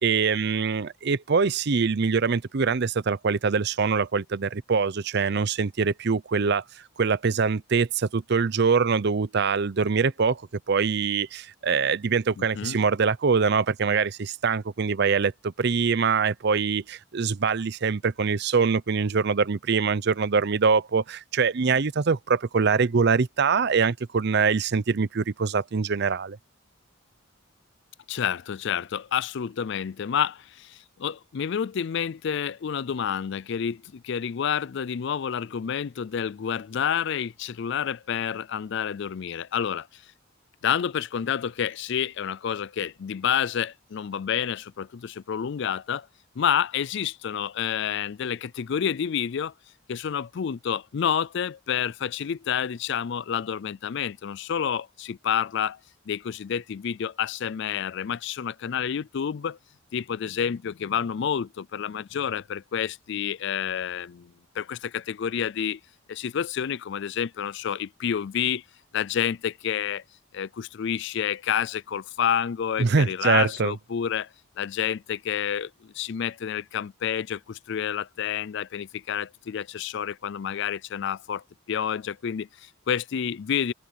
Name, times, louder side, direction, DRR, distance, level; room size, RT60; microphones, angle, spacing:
voice 1, 0.0-6.6 7.0-10.4 10.7-26.4 72.8-73.7, right 5 dB, 55° right, 0.6 m, -24 dB
voice 2, 12.4-12.8 28.1-40.0 40.6-46.1 46.4-49.5 49.9-55.8 56.1-59.6 59.9-65.8 66.1-68.6 68.9-70.0 70.3-74.3 74.6-83.7, left 8 dB, 60° left, 0.4 m, -29 dB
open air
head